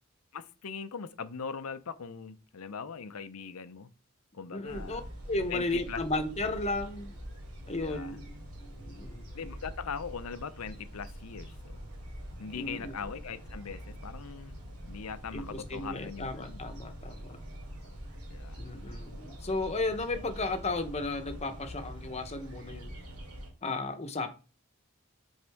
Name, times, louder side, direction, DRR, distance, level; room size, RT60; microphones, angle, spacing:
voice 1, 0.3-3.9 4.3-5.0 5.5-6.0 7.8-8.2 9.3-11.8 12.4-16.6 18.3-18.6, left 6 dB, 80° left, 0.6 m, -41 dB
voice 2, 4.5-5.0 5.3-7.2 7.7-9.3 12.5-12.9 15.3-17.4 18.6-22.9 23.6-24.3, left 2 dB, 30° left, 0.9 m, -34 dB
sound 1, 4.7-23.5, equal, 85° right, 2.7 m, -45 dB
8.0 x 3.6 x 3.5 m
head